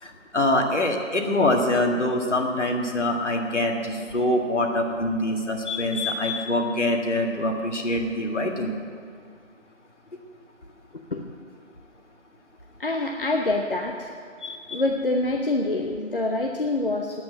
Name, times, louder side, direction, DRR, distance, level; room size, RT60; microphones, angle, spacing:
voice 1, 0.0-8.7 14.4-14.8, left 1 dB, 65° left, 2 dB, 2.0 m, -24 dB
voice 2, 12.8-14.1 14.7-17.2, left 2 dB, 45° left, 2 dB, 0.8 m, -26 dB
9.7 x 8.4 x 9.5 m, 2.3 s
figure-of-eight pair, 170°, 38 cm